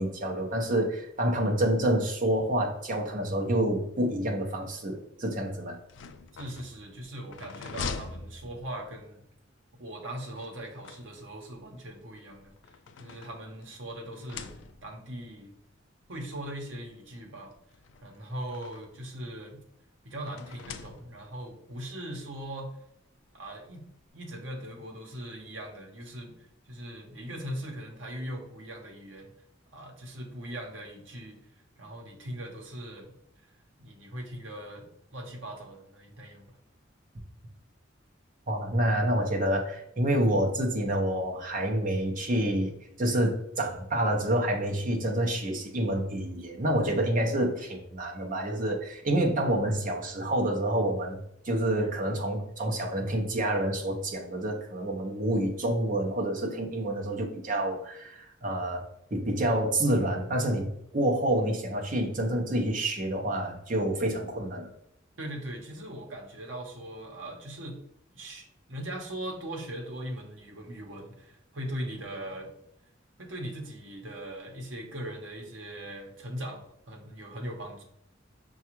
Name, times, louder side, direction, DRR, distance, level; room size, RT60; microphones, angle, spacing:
voice 1, 0.0-5.8 38.5-42.7 43.0-51.2 51.4-64.7, right 1 dB, 45° right, 1 dB, 0.7 m, -28 dB
door wood old open close creak rattle lock click, 5.8-9.1 10.4-11.5 12.4-13.8 14.1-15.1 16.0-16.1 16.4-16.5 17.7-19.1 20.3-21.4, left 5 dB, 65° left, 0.3 m, -43 dB
voice 2, 6.4-9.2 9.8-12.5 13.0-14.5 14.8-15.5 16.1-17.5 18.0-19.6 20.0-22.8 23.3-23.8 24.1-29.3 29.7-31.4 31.8-33.1 33.8-36.5 65.2-67.8 68.1-72.5 73.2-77.8, right 1 dB, 75° right, 1 dB, 0.9 m, -40 dB
5.8 x 2.3 x 2.9 m, 0.77 s
head